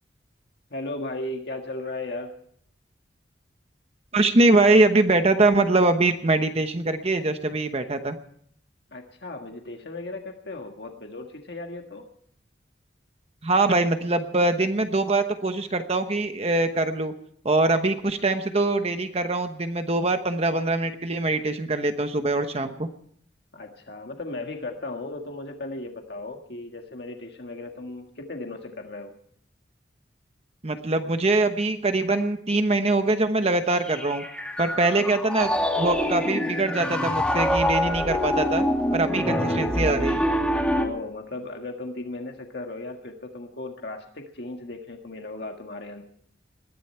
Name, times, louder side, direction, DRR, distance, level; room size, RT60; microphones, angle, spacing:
voice 1, 0.7-2.3 8.9-12.1 23.5-29.1 34.7-35.1 39.3-39.7 40.7-46.0, left 2 dB, 60° left, 3 dB, 1.8 m, -36 dB
voice 2, 4.1-8.2 13.4-17.1 17.4-22.9 30.6-34.2 34.6-35.5 35.8-38.6 38.9-40.2, right 2 dB, 35° right, 8 dB, 1.0 m, -23 dB
Piano, 33.9-40.9, left 1 dB, 5° left, 2.6 m, -25 dB
21.0 x 14.5 x 4.4 m, 0.65 s
head